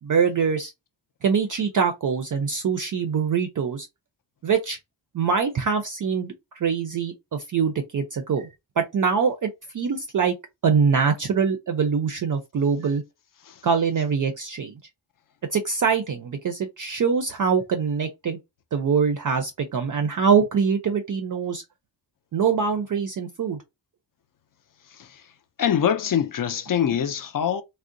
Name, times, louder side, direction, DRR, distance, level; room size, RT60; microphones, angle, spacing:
voice 1, 0.0-0.7 1.2-3.9 4.4-4.8 5.1-8.5 8.8-10.4 10.6-13.0 13.6-14.8 15.5-18.4 18.7-21.6 22.3-23.6, right 6 dB, 45° right, 0.4 m, -23 dB
voice 2, 25.6-27.6, left 9 dB, 50° left, 0.4 m, -23 dB
3.6 x 2.0 x 2.5 m
wide cardioid pair, 180°, 45 cm